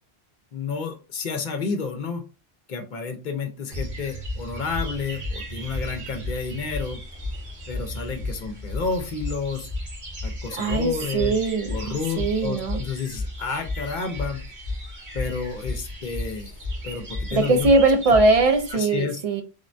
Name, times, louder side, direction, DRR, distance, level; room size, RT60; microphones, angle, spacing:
voice 1, 0.5-2.2 2.7-7.0 7.7-9.7 10.2-11.3 11.7-14.4 15.1-16.5 16.8-17.7 18.7-19.2, left 5 dB, 55° left, 5 dB, 0.6 m, -30 dB
sound 1, 3.7-18.7, left 1 dB, 80° right, 1.5 m, -33 dB
voice 2, 10.6-12.8 17.3-19.4, right 3 dB, 55° right, 6 dB, 0.4 m, -21 dB
3.6 x 2.1 x 2.5 m, 0.33 s
omnidirectional pair, 1.1 m